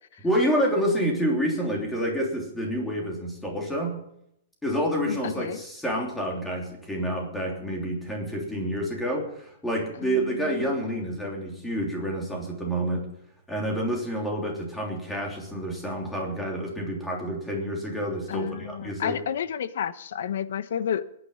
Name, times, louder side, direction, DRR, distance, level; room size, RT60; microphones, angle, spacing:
voice 1, 0.2-4.0 4.6-13.1 13.5-19.2, equal, 5° left, -1 dB, 3.2 m, -28 dB
voice 2, 5.1-5.6 10.0-10.7 18.3-21.1, left 9 dB, 65° left, 14 dB, 0.9 m, -31 dB
21.0 x 9.8 x 5.6 m, 0.75 s
hypercardioid pair, 170°, 0 cm